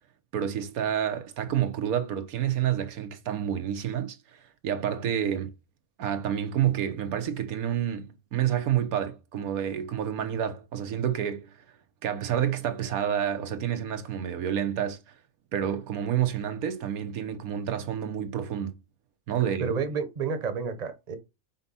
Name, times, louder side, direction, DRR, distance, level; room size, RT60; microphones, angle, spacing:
voice 1, 0.3-5.5 6.0-11.5 12.0-15.0 15.5-18.8 19.3-19.7, right 9 dB, 90° right, 1.3 m, -29 dB
voice 2, 19.6-21.2, right 5 dB, 35° right, 0.9 m, -30 dB
5.6 x 4.4 x 4.1 m
omnidirectional pair, 1.5 m